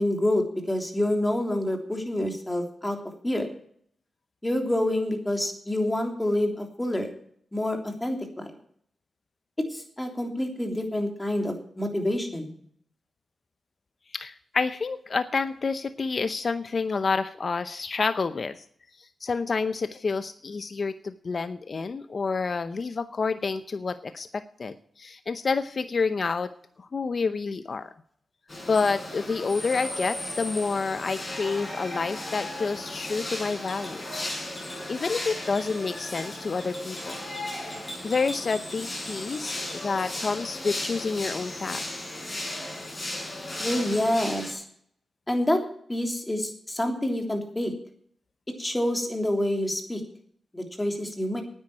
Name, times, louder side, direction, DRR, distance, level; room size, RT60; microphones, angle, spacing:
voice 1, 0.0-3.0 3.2-3.5 4.4-7.1 7.5-8.5 9.7-12.5 43.6-44.6 45.3-45.6 45.9-47.7 48.6-50.0 50.5-51.4, left 1 dB, 15° left, 3 dB, 3.3 m, -27 dB
voice 2, 14.1-18.6 19.0-26.5 26.8-27.9 28.7-37.2 38.0-41.8, left 4 dB, 50° left, 11 dB, 0.7 m, -29 dB
sound 1, 28.5-44.5, left 1 dB, 35° left, 5.5 m, -35 dB
9.5 x 9.1 x 8.9 m, 0.62 s
cardioid pair, 60°, 0 cm